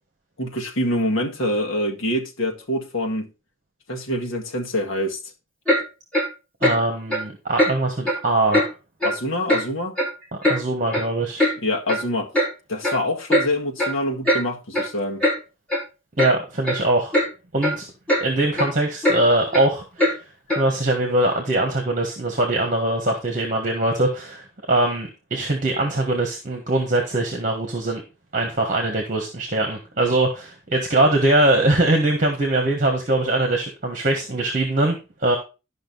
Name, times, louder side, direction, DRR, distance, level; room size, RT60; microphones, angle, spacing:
voice 1, 0.4-3.3 3.9-5.2 9.0-10.0 11.6-12.3 12.7-15.2, left 1 dB, 70° left, 1.8 m, -25 dB
Clock, 5.7-5.8 6.1-6.3 6.6-6.8 7.1-7.2 7.6-7.7 8.0-8.2 8.5-8.7 9.0-9.2 9.5-9.6 10.0-10.6 10.9-11.0 11.4-11.5 11.9-12.0 12.3-12.5 12.8-13.0 13.3-13.5 13.8-13.9 14.2-14.4 14.7-14.9 15.2-15.4 15.7-15.8 16.2-16.3 16.6-16.8 17.1-17.3 17.6-17.8 18.1-18.2 18.5-18.7 19.0-19.2 19.5-19.6 20.0-20.1 20.5-20.6, equal, 5° left, 4.3 m, -20 dB
voice 2, 6.6-8.7 10.4-11.5 16.2-17.2 17.5-17.9 18.2-20.2 20.5-28.0 28.3-34.9 35.2-35.4, right 2 dB, 35° right, 1.5 m, -22 dB
11.5 x 5.6 x 4.1 m
head